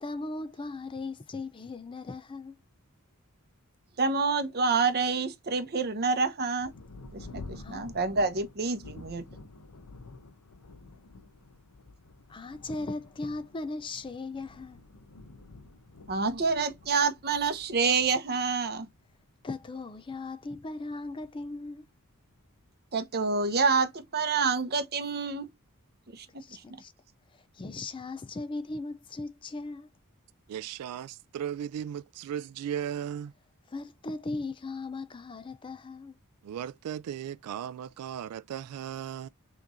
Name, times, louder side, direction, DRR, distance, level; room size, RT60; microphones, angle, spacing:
voice 1, 0.0-2.6 7.5-7.9 12.3-14.8 19.4-21.9 26.3-26.9 27.3-29.9 33.7-36.2, left 3 dB, 20° left, 0.4 m, -38 dB
voice 2, 4.0-6.7 7.1-9.2 16.1-18.9 22.9-25.5 26.1-26.3 26.5-26.6, right 4 dB, 45° right, 0.9 m, -27 dB
Thunder, 6.6-22.6 23.4-23.5 24.0-24.5, left 3 dB, 85° left, 0.7 m, -50 dB
voice 3, 30.5-33.3 36.4-39.3, right 9 dB, 85° right, 0.3 m, -36 dB
5.8 x 3.1 x 2.5 m
head